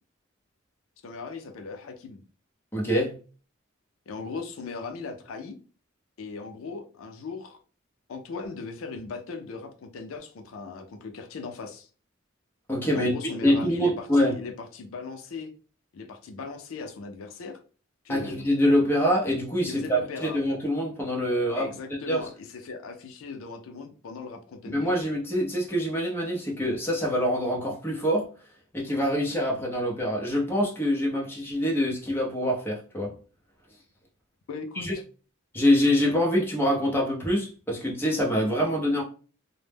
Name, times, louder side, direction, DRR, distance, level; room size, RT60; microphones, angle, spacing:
voice 1, 1.0-2.2 4.1-5.5 6.2-7.6 8.1-11.9 12.9-15.5 15.9-17.6 18.0-18.4 19.7-20.4 21.5-25.1 34.5-35.0, left 4 dB, 85° left, 5 dB, 0.4 m, -38 dB
voice 2, 2.7-3.2 12.7-13.1 13.4-14.3 18.1-21.7 22.1-22.2 24.7-28.3 28.7-33.1 34.8-34.9 35.5-39.0, equal, 10° left, -2 dB, 0.5 m, -25 dB
2.1 x 2.0 x 3.2 m, 0.38 s
head